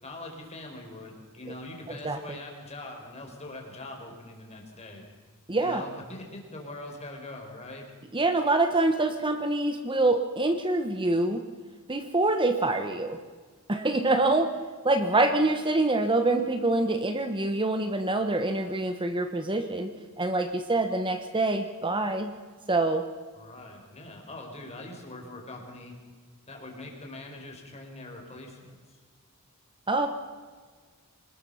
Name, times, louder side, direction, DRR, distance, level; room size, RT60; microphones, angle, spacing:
voice 1, 0.0-5.0 5.6-7.9 23.3-25.9 26.5-29.0, left 2 dB, 30° left, 2 dB, 4.9 m, -42 dB
voice 2, 1.9-2.4 5.5-5.8 8.1-11.5 11.9-13.2 13.7-14.6 14.8-22.3 22.7-23.1 29.9-30.1, right 2 dB, 20° right, 7 dB, 1.1 m, -25 dB
25.5 x 20.5 x 5.7 m, 1.5 s
head